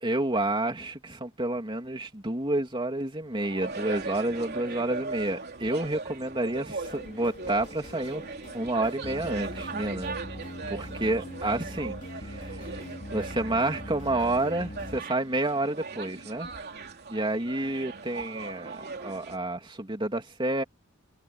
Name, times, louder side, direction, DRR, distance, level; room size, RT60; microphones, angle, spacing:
voice 1, 0.0-8.2 8.5-10.2 10.7-16.5 17.1-20.6, right 2 dB, 20° right, 3.0 m, -30 dB
sound 1, 3.3-19.4, right 4 dB, 45° right, 3.4 m, -39 dB
sound 2, 6.7-15.0, left 1 dB, 35° left, 4.0 m, -42 dB
head